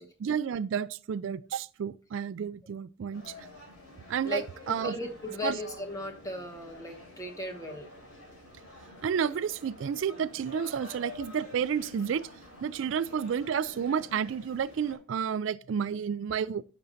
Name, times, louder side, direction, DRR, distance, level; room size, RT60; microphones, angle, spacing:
voice 1, 0.2-3.3 4.1-4.9 5.4-5.6 9.0-12.3 12.6-16.6, right 7 dB, 65° right, 0.3 m, -31 dB
sound 1, 3.1-15.0, left 2 dB, 85° left, 4.4 m, -48 dB
voice 2, 4.2-7.9, left 1 dB, 15° left, 1.2 m, -37 dB
10.5 x 6.7 x 2.7 m
head